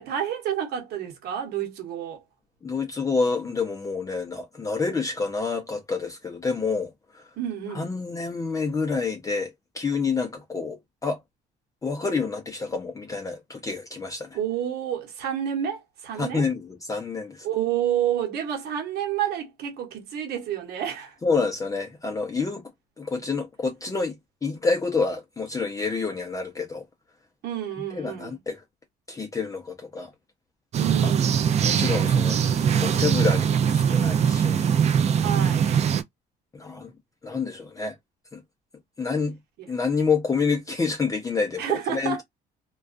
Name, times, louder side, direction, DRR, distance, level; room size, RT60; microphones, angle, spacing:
voice 1, 0.0-2.2 7.4-7.9 14.3-16.4 17.4-21.2 27.4-28.4 30.7-31.4 35.1-35.7 39.6-39.7 41.6-42.2, right 10 dB, 70° right, 1.1 m, -29 dB
voice 2, 2.6-7.3 7.7-11.2 11.8-14.4 16.2-17.5 21.2-22.7 23.0-24.1 24.4-26.8 27.9-28.6 29.1-30.1 31.0-31.1 31.6-34.7 36.5-36.9 37.2-38.0 38.3-38.4 39.0-39.4 39.7-42.2, left 4 dB, 20° left, 0.5 m, -28 dB
sound 1, 30.7-36.0, right 8 dB, 40° right, 0.4 m, -21 dB
2.3 x 2.2 x 2.4 m
cardioid pair, 110°, 17 cm